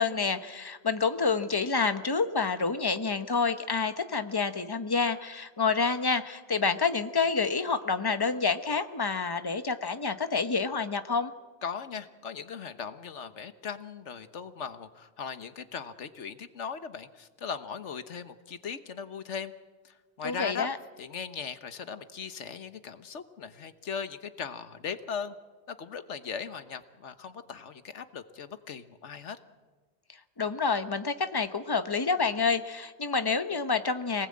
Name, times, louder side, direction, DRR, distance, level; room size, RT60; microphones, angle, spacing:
voice 1, 0.0-11.3 20.2-20.8 30.4-34.3, left 4 dB, 20° left, 10 dB, 1.0 m, -28 dB
voice 2, 11.6-19.5 19.8-20.7 21.0-25.3 25.7-29.4, left 6 dB, 75° left, 11 dB, 1.4 m, -38 dB
26.0 x 19.5 x 8.7 m, 1.4 s
omnidirectional pair, 1.2 m